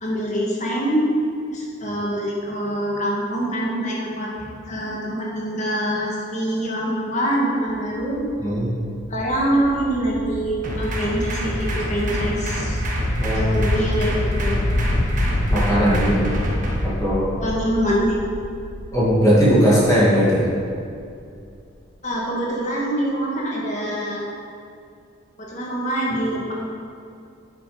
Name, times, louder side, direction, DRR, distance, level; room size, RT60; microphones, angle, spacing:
voice 1, 0.0-1.1 1.5-8.2 9.1-12.8 13.3-14.7 17.4-18.2 22.0-24.2 25.4-26.5, right 1 dB, 35° left, -4 dB, 2.1 m, -24 dB
sound 1, 7.7-21.4, left 1 dB, 55° left, 0.7 m, -28 dB
voice 2, 8.4-8.7 13.2-13.5 15.5-16.3 16.8-17.3 18.9-20.5, equal, 15° left, -7 dB, 2.4 m, -18 dB
sound 2, 10.6-16.8, right 1 dB, 40° right, 1.6 m, -27 dB
9.7 x 9.3 x 5.2 m, 2.4 s
head